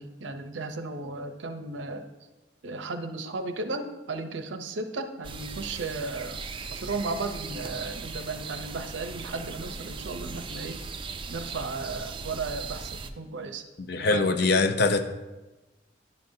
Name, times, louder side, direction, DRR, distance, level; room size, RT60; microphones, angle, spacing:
voice 1, 0.0-2.1 2.6-6.4 6.7-10.8 11.3-13.6 14.0-14.7, right 3 dB, 85° right, 8 dB, 0.6 m, -35 dB
sound 1, 5.2-13.1, right 4 dB, 30° right, 0.4 m, -38 dB
voice 2, 13.9-15.0, left 3 dB, 60° left, 8 dB, 0.5 m, -23 dB
10.5 x 5.3 x 2.7 m, 1.1 s
head